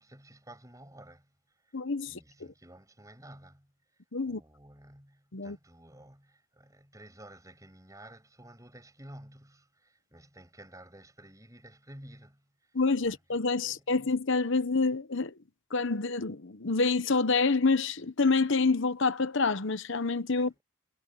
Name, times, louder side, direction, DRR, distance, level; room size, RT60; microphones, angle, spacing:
voice 1, 0.0-13.2 13.6-13.9 20.4-20.6, right 1 dB, 15° right, 7.7 m, -53 dB
voice 2, 1.7-2.1 4.1-4.4 5.3-5.5 12.7-15.3 15.7-20.6, left 4 dB, 55° left, 1.0 m, -27 dB
head